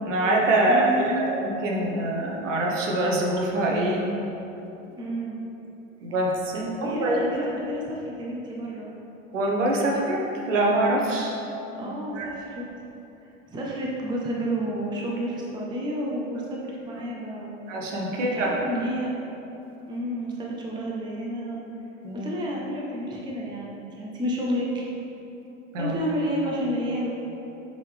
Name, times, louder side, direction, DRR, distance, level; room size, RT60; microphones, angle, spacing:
voice 1, 0.0-4.0 6.0-7.2 9.3-11.3 12.1-12.3 17.7-18.6 22.0-22.3 25.7-25.9, right 1 dB, 60° right, -1 dB, 1.1 m, -24 dB
voice 2, 0.7-1.1 5.0-5.4 6.5-8.9 11.7-12.7 13.5-17.6 18.2-19.1 19.9-21.6 22.1-24.8 25.8-27.1, equal, 10° right, -3 dB, 0.6 m, -30 dB
7.9 x 4.0 x 3.4 m, 3.0 s
figure-of-eight pair, 80°, 41 cm